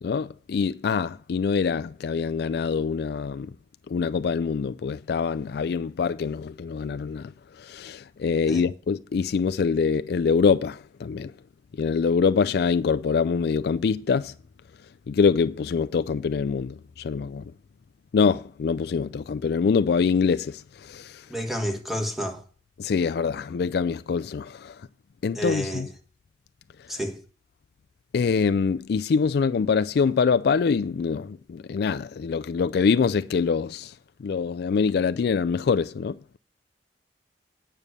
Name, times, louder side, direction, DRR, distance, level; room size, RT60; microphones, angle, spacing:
voice 1, 0.0-3.5 3.9-7.3 7.6-11.3 11.8-14.3 15.1-17.4 18.1-21.2 22.8-24.8 25.2-25.9 28.1-33.9 34.2-36.2, left 5 dB, 60° left, 0.3 m, -24 dB
voice 2, 21.3-22.4 25.3-25.9 26.9-27.2, equal, ahead, 1.5 m, -30 dB
9.1 x 6.6 x 6.8 m
head